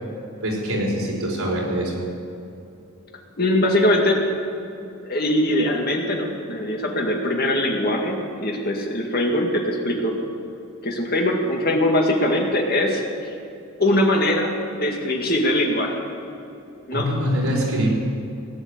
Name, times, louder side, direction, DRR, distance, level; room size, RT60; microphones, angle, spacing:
voice 1, 0.4-1.9 16.9-17.9, equal, 85° right, -3 dB, 4.7 m, -23 dB
voice 2, 3.4-4.2 5.0-10.1 10.8-13.0 13.8-16.0 16.9-17.1, left 1 dB, 45° left, 1 dB, 2.1 m, -21 dB
18.0 x 9.8 x 8.1 m, 2.7 s
head